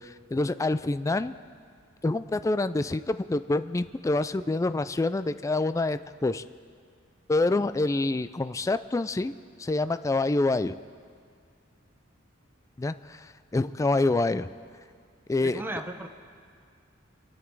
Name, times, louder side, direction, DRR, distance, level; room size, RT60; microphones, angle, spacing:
voice 1, 0.0-1.3 2.0-6.4 7.3-9.3 9.6-10.8 12.8-13.3 13.5-14.5 15.3-15.6, left 2 dB, 15° left, 12 dB, 0.3 m, -26 dB
voice 2, 15.4-16.1, right 1 dB, 10° right, 5 dB, 0.9 m, -35 dB
24.5 x 9.7 x 4.7 m, 2.2 s
head